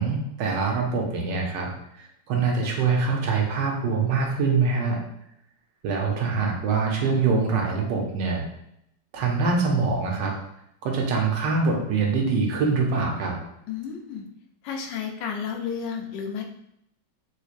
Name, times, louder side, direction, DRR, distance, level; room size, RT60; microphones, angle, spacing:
voice 1, 0.0-1.7 2.0-5.0 5.8-8.5 9.1-10.3 10.8-13.4, right 4 dB, 85° right, 0 dB, 1.4 m, -24 dB
voice 2, 13.7-14.3 14.6-16.4, left 7 dB, 85° left, 2 dB, 1.2 m, -32 dB
3.5 x 3.1 x 2.4 m, 0.76 s
omnidirectional pair, 1.9 m